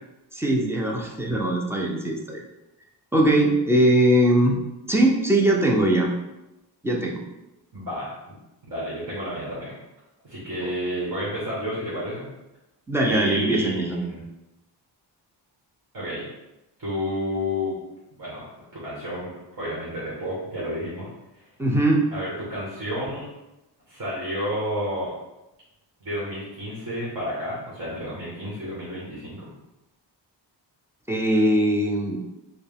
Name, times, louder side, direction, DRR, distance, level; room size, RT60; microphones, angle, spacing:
voice 1, 0.3-2.4 3.1-4.6 4.9-6.1 6.8-7.2 10.6-10.7 12.9-14.0 21.6-22.0 31.1-32.2, right 1 dB, 5° right, -1 dB, 0.4 m, -21 dB
voice 2, 7.7-8.4 8.6-9.8 10.2-12.3 13.0-14.3 15.9-16.2 16.8-17.8 18.2-18.4 18.7-21.1 21.3-21.5 22.1-23.2 23.9-25.1 26.0-29.5, equal, 50° right, -8 dB, 1.3 m, -31 dB
4.3 x 2.3 x 3.4 m, 0.95 s
wide cardioid pair, 140°, 44 cm